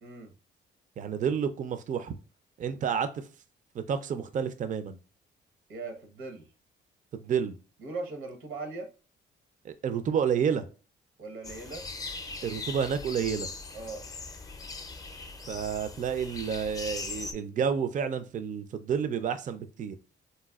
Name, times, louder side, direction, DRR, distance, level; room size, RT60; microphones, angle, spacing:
voice 1, 0.0-0.3 5.7-6.5 7.8-8.9 11.2-11.8 13.7-14.1, right 3 dB, 80° right, 4 dB, 1.0 m, -39 dB
voice 2, 1.0-2.1 2.6-3.2 3.7-5.0 7.1-7.6 9.6-10.7 12.4-13.5 15.5-20.0, right 7 dB, 40° right, 11 dB, 0.4 m, -30 dB
sound 1, 11.4-17.3, left 3 dB, 20° left, 0.5 m, -40 dB
4.0 x 2.2 x 2.3 m, 0.36 s
cardioid pair, 90°, 20 cm